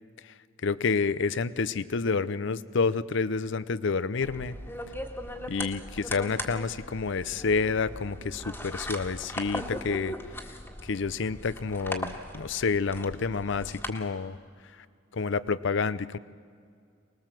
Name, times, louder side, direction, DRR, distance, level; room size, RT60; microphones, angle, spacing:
voice 1, 0.6-4.5 5.5-10.1 10.9-14.4 15.1-16.2, left 4 dB, 65° left, 17 dB, 0.6 m, -29 dB
sound 1, 4.2-13.9, left 1 dB, 10° left, 1.8 m, -39 dB
25.0 x 20.0 x 7.5 m, 2.2 s
head